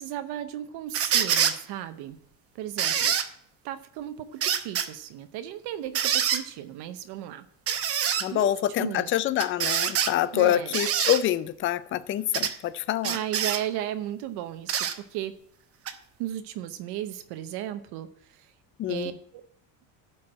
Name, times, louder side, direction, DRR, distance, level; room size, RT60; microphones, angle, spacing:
voice 1, 0.0-2.2 2.5-3.1 3.6-7.5 8.3-8.5 8.8-9.1 10.3-10.7 13.0-15.3 16.2-18.5 18.9-19.4, right 12 dB, 65° right, 0.8 m, -35 dB
sound 1, 0.9-1.6 2.8-3.3 4.4-4.9 6.0-6.4 7.7-8.3 9.4-10.1 10.7-11.2 12.3-12.5 13.0-13.6 14.7-15.0 15.9-16.0, right 8 dB, 35° right, 0.8 m, -25 dB
voice 2, 8.2-13.2 18.8-19.2, left 12 dB, 30° left, 0.4 m, -26 dB
12.5 x 4.6 x 7.4 m
cardioid pair, 150°, 42 cm